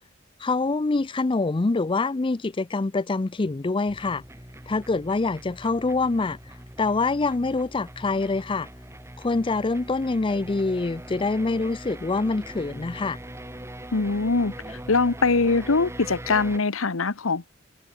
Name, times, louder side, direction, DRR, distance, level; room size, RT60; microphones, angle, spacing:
voice 1, 0.4-4.2 4.7-6.4 6.8-8.7 9.2-13.2, left 3 dB, 25° left, 0.5 m, -25 dB
sound 1, 3.9-16.6, right 1 dB, 15° right, 6.9 m, -41 dB
voice 2, 13.9-17.5, left 3 dB, 80° left, 1.1 m, -23 dB
head